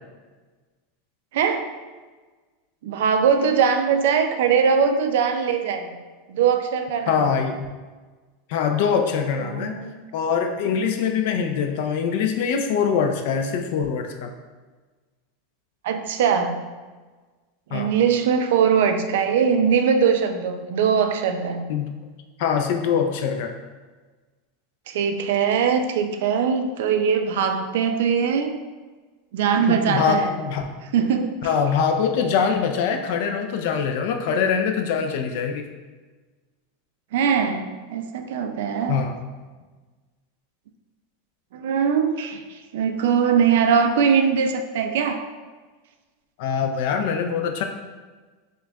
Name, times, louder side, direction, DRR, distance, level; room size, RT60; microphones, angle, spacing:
voice 1, 1.3-1.7 2.8-6.0 6.3-7.2 9.4-10.0 15.8-16.6 17.7-21.6 24.9-28.6 29.3-30.4 30.9-31.5 37.1-39.0 41.5-45.3, right 7 dB, 70° right, 7 dB, 0.3 m, -21 dB
voice 2, 7.1-7.6 8.5-9.7 10.1-14.3 17.7-17.9 21.7-21.9 22.4-23.5 29.7-30.6 31.4-35.6 38.9-39.1 46.4-47.6, left 6 dB, 55° left, 5 dB, 0.3 m, -23 dB
5.9 x 2.2 x 2.2 m, 1.3 s
supercardioid pair, 160°, 0 cm